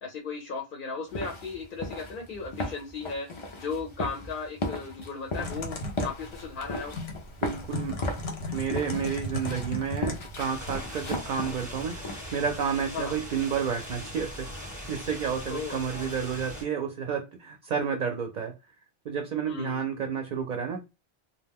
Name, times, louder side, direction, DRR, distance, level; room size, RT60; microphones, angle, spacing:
voice 1, 0.0-3.3 3.6-7.0 12.9-13.1 15.5-16.0 19.5-19.8, left 4 dB, 60° left, 0 dB, 0.8 m, -36 dB
sound 1, 1.1-12.3, left 2 dB, 40° left, 0.4 m, -36 dB
Typing, 5.4-10.8, left 1 dB, 85° left, 1.0 m, -36 dB
voice 2, 7.4-8.0 8.5-12.0 12.3-14.5 14.9-18.5 19.1-20.8, right 7 dB, 55° right, 4 dB, 0.5 m, -30 dB
sound 2, 10.4-16.6, equal, 20° left, 0.9 m, -40 dB
2.4 x 2.1 x 3.4 m, 0.26 s
omnidirectional pair, 1.1 m